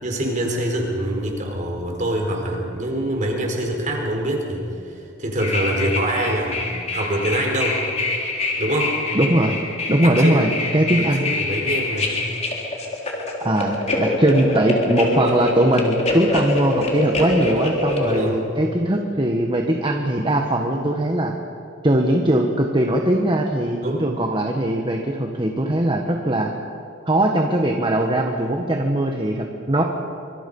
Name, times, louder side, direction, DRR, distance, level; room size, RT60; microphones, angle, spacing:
voice 1, 0.0-7.8 8.6-8.9 10.0-10.5 11.0-12.2 18.0-18.4 23.8-24.0, right 1 dB, 40° right, 1 dB, 4.4 m, -25 dB
sound 1, 5.4-18.2, left 2 dB, 35° left, 3.6 m, -25 dB
voice 2, 9.1-9.6 9.9-11.3 13.4-21.3 21.8-26.5 27.1-29.8, right 1 dB, 25° right, 2 dB, 1.5 m, -20 dB
26.0 x 25.5 x 5.6 m, 2.6 s
head